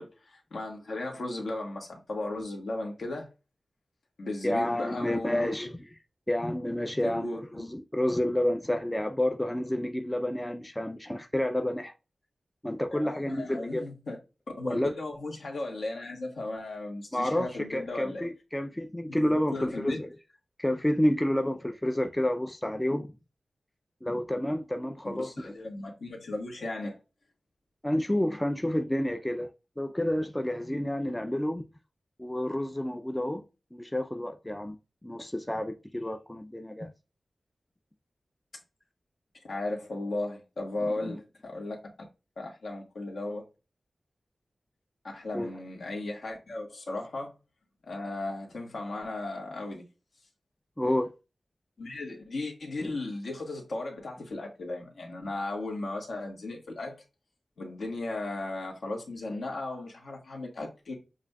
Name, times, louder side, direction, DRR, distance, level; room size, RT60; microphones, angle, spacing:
voice 1, 0.0-3.3 4.2-5.5 7.0-7.7 12.9-14.2 14.6-18.2 19.1-20.0 25.0-27.0 39.4-41.8 42.4-43.4 45.0-47.3 47.9-49.8 51.8-56.9 57.6-60.9, left 2 dB, 75° left, 1.6 m, -36 dB
voice 2, 4.4-5.8 6.3-11.9 12.6-13.8 14.6-14.9 17.1-20.1 20.6-23.1 24.0-25.5 27.8-29.5 29.8-31.6 32.2-33.4 33.7-34.8 35.0-36.9 41.1-41.2 45.3-45.5 50.8-51.1 52.8-52.9, left 1 dB, 10° left, 0.4 m, -29 dB
7.2 x 2.6 x 2.2 m
wide cardioid pair, 115°, 0 cm